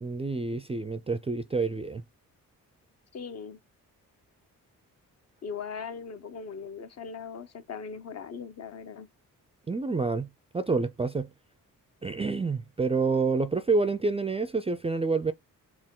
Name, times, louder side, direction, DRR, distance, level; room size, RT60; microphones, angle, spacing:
voice 1, 0.0-2.0 9.7-11.3 12.0-15.3, right 4 dB, 20° right, 0.3 m, -28 dB
voice 2, 3.1-3.6 5.4-9.1, left 6 dB, 50° left, 0.7 m, -39 dB
4.3 x 2.3 x 3.6 m
cardioid pair, 110°, 34 cm